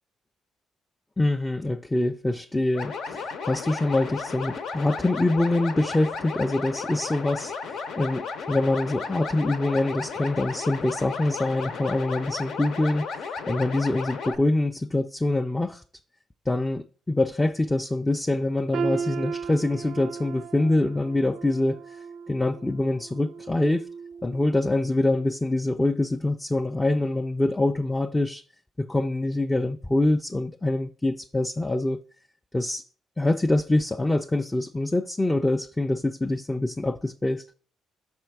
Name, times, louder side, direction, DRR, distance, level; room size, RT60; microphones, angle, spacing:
voice 1, 1.2-15.8 16.5-22.0 22.3-23.9 24.2-28.4 28.8-32.0 32.5-32.8 33.2-37.5, left 2 dB, 15° left, 0.4 m, -25 dB
sound 1, 2.7-14.4, left 5 dB, 80° left, 0.8 m, -34 dB
sound 2, 18.7-24.7 25.1-25.3 26.0-26.1, right 6 dB, 70° right, 0.4 m, -36 dB
6.4 x 4.3 x 4.6 m
cardioid pair, 90°, 0 cm